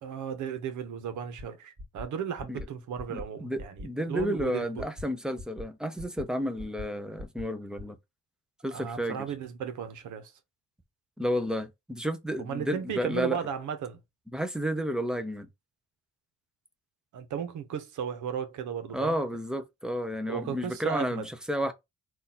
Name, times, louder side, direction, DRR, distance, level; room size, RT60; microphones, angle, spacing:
voice 1, 0.0-4.8 8.7-10.3 12.4-14.0 17.1-19.2 20.3-21.3, right 7 dB, 75° right, 1.1 m, -35 dB
sound 1, 1.4-1.5 1.8-2.0 2.4-2.7 3.0-3.2 3.6-3.9 4.2-4.4 4.8-5.0 5.4-5.6 6.0-6.2 6.6-6.8 7.2-7.4 7.8-7.9, left 1 dB, 30° right, 2.3 m, -40 dB
voice 2, 3.1-8.0 8.6-9.3 11.2-13.4 14.3-15.5 18.9-21.7, equal, ahead, 0.8 m, -31 dB
3.8 x 2.7 x 4.2 m
cardioid pair, 90°, 30 cm